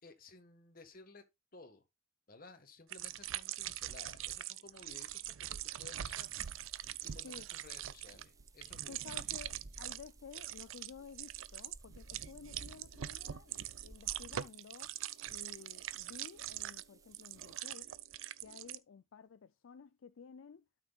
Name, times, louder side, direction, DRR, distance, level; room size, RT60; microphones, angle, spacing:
voice 1, 0.0-1.2 1.5-1.8 2.3-6.3 7.0-9.0, left 3 dB, 45° left, 1.5 m, -56 dB
sound 1, 2.9-10.1 10.3-10.9 11.1-18.8, right 12 dB, 75° right, 0.5 m, -43 dB
sound 2, 6.0-17.6, right 2 dB, 15° right, 0.5 m, -60 dB
voice 2, 8.9-14.9 15.3-17.9 18.4-20.7, left 6 dB, 70° left, 0.4 m, -53 dB
12.5 x 6.1 x 2.3 m
head